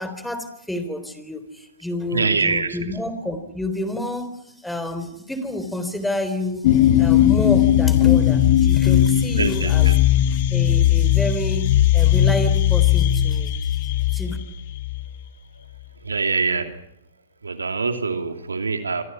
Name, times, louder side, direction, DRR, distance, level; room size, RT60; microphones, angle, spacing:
voice 1, 0.0-9.9 10.5-13.5 14.1-14.4, left 1 dB, 5° left, 9 dB, 3.7 m, -29 dB
voice 2, 2.1-2.9 9.3-10.0 15.5-15.7 16.0-16.8 17.4-19.0, right 4 dB, 90° right, 7 dB, 2.8 m, -24 dB
sound 1, 6.6-15.2, left 11 dB, 55° left, 1.8 m, -18 dB
28.0 x 25.5 x 5.9 m, 0.77 s
hypercardioid pair, 120°, 0 cm